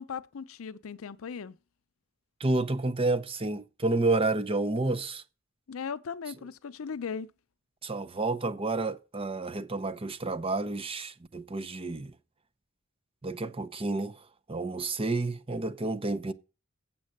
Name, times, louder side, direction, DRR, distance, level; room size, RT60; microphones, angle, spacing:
voice 1, 0.0-1.6 5.7-7.3, left 6 dB, 85° left, 0.5 m, -38 dB
voice 2, 2.4-5.2 7.8-12.1 13.2-14.2 14.5-16.3, right 2 dB, 25° right, 0.6 m, -30 dB
7.6 x 7.2 x 6.5 m
head